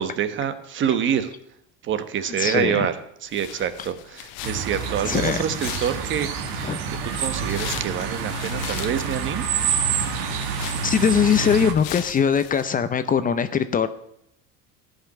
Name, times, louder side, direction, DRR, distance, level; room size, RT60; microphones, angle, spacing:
voice 1, 0.0-1.3 1.8-6.3 6.5-9.5, right 8 dB, 40° right, 10 dB, 1.2 m, -26 dB
voice 2, 2.4-2.9 5.0-5.4 6.6-6.8 10.8-13.9, left 7 dB, 25° left, 11 dB, 0.6 m, -21 dB
sound 1, 3.3-12.6, left 12 dB, 70° left, 0.9 m, -39 dB
sound 2, 4.4-11.7, right 6 dB, 85° right, 1.6 m, -27 dB
14.0 x 5.6 x 8.3 m, 0.73 s
cardioid pair, 130°, 31 cm